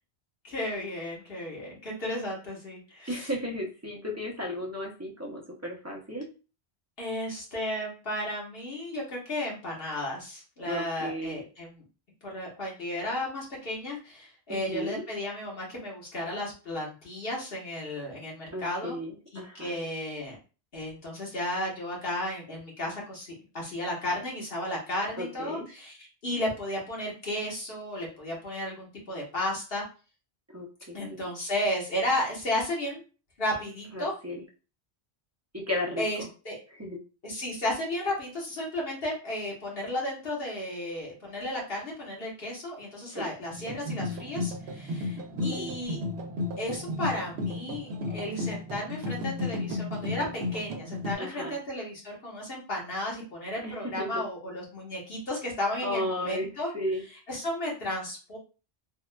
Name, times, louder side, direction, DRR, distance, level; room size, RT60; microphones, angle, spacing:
voice 1, 0.4-3.3 7.0-11.8 12.2-19.0 19.3-20.4 20.7-25.9 26.2-29.8 30.9-33.0 33.4-34.1 36.0-36.5 37.2-46.0 46.6-56.7 57.3-58.4, left 1 dB, 65° left, -3 dB, 1.3 m, -33 dB
voice 2, 3.1-6.3 10.6-11.4 14.5-15.0 18.5-19.8 25.2-25.7 30.5-31.3 33.9-34.4 35.5-36.3 36.7-37.0 43.1-43.3 45.3-45.8 51.2-51.6 53.6-54.2 55.8-57.0, left 1 dB, 20° right, -1 dB, 0.5 m, -35 dB
sound 1, 43.5-51.1, left 2 dB, 80° right, 0.8 m, -33 dB
3.5 x 2.3 x 2.2 m, 0.34 s
omnidirectional pair, 1.1 m